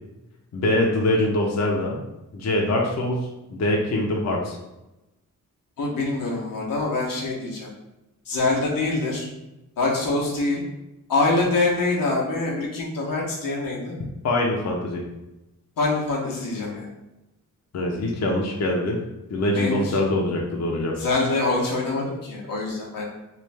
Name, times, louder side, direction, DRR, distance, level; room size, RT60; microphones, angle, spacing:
voice 1, 0.5-2.0 2.3-4.6 14.2-15.0 17.7-19.0 19.3-20.9, left 1 dB, 50° left, -1 dB, 0.7 m, -23 dB
voice 2, 5.8-7.7 8.3-9.3 9.8-10.6 11.1-14.0 15.8-16.9 19.5-20.0 21.0-23.1, left 3 dB, 90° left, -3 dB, 0.9 m, -25 dB
3.3 x 2.4 x 3.3 m, 0.98 s
cardioid pair, 80°, 33 cm